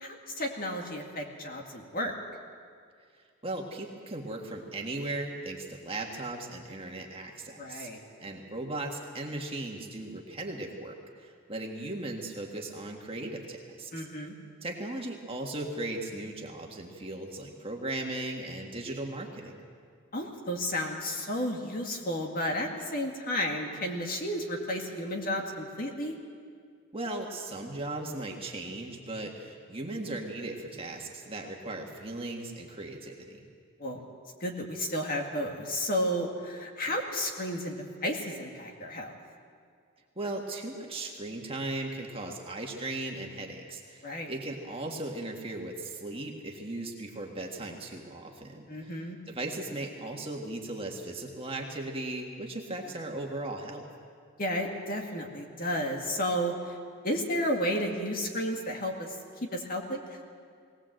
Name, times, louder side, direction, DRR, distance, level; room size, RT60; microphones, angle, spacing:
voice 1, 0.0-2.2 7.6-8.0 13.9-14.3 20.1-26.1 33.8-34.0 34.4-39.1 44.0-44.3 48.7-49.2 54.4-56.8 57.0-59.1 59.5-60.0, equal, 40° left, 1 dB, 2.2 m, -32 dB
voice 2, 3.4-7.9 8.2-14.1 14.6-19.6 26.9-33.4 40.2-53.9, right 2 dB, 25° right, 1 dB, 1.8 m, -37 dB
20.5 x 18.5 x 7.8 m, 2.2 s
head